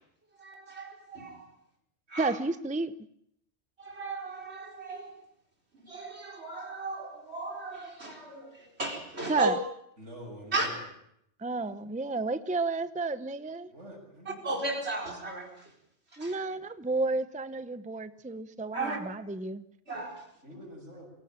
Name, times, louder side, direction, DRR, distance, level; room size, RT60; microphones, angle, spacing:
voice 1, 0.4-1.5 2.1-2.4 3.8-5.1 5.7-9.5 10.5-10.7 14.3-15.7 16.2-16.4 18.7-19.0 19.9-20.2, right 3 dB, 65° right, 1 dB, 4.8 m, -35 dB
voice 2, 2.2-2.9 9.3-9.6 11.4-13.7 16.2-19.6, right 3 dB, 10° right, 13 dB, 0.7 m, -31 dB
voice 3, 10.0-10.8 13.7-14.5 20.4-21.1, equal, 90° right, 0 dB, 7.6 m, -46 dB
24.0 x 17.0 x 8.9 m, 0.73 s
omnidirectional pair, 1.2 m